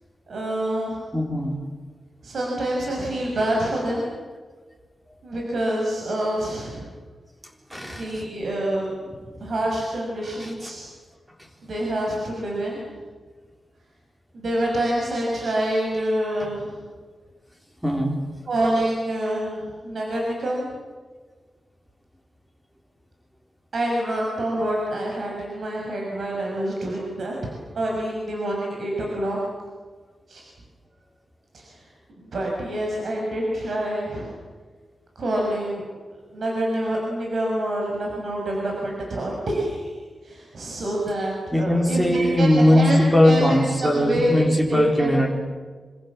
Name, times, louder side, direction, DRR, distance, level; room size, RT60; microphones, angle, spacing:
voice 1, 0.3-1.0 2.2-4.1 5.2-6.9 7.8-8.9 9.4-10.9 11.6-12.8 14.3-16.8 18.5-20.7 23.7-27.4 27.7-29.4 30.3-30.4 31.5-31.8 32.2-34.3 35.1-35.8 36.3-39.9 40.2-43.0 43.2-45.1, right 1 dB, 60° right, -2 dB, 6.4 m, -26 dB
voice 2, 1.1-1.6 7.7-8.2 10.4-10.5 17.8-18.2 41.5-45.3, left 1 dB, 5° right, 1 dB, 4.3 m, -20 dB
27.0 x 26.5 x 7.5 m, 1.4 s
wide cardioid pair, 170°, 0 cm